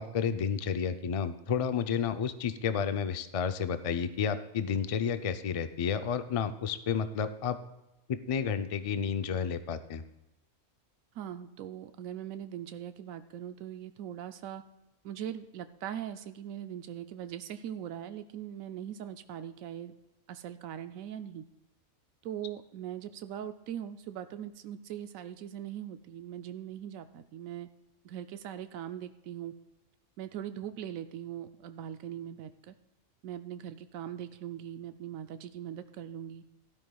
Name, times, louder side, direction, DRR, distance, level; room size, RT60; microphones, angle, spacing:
voice 1, 0.0-7.6 8.1-10.0, left 7 dB, 55° left, 9 dB, 0.3 m, -31 dB
voice 2, 11.1-14.6 15.0-19.9 20.3-21.4 22.2-27.7 28.0-29.5 30.2-32.7 33.2-36.4, right 10 dB, 90° right, 10 dB, 1.0 m, -41 dB
16.5 x 12.5 x 2.3 m, 0.96 s
omnidirectional pair, 1.4 m